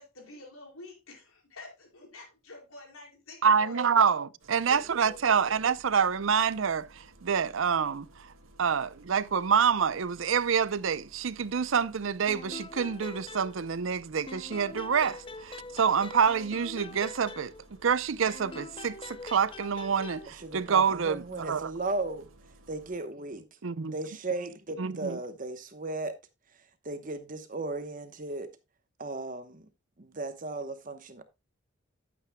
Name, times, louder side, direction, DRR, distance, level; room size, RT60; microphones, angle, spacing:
voice 1, 0.0-4.0 4.7-5.6, left 2 dB, 85° left, 4.6 m, -47 dB
voice 2, 3.4-8.3 8.6-21.7 23.6-23.9 24.8-25.2, right 6 dB, 70° right, 0.5 m, -27 dB
Engine starting, 4.4-23.0, right 1 dB, 85° right, 2.2 m, -57 dB
sound 1, 12.3-14.0 14.3-17.9 18.3-20.3, left 3 dB, 25° left, 0.6 m, -44 dB
voice 3, 20.4-22.3 22.7-23.6 23.9-26.1 26.8-28.6 29.0-29.7 30.0-31.2, right 2 dB, 40° right, 1.0 m, -36 dB
12.5 x 8.7 x 2.2 m
head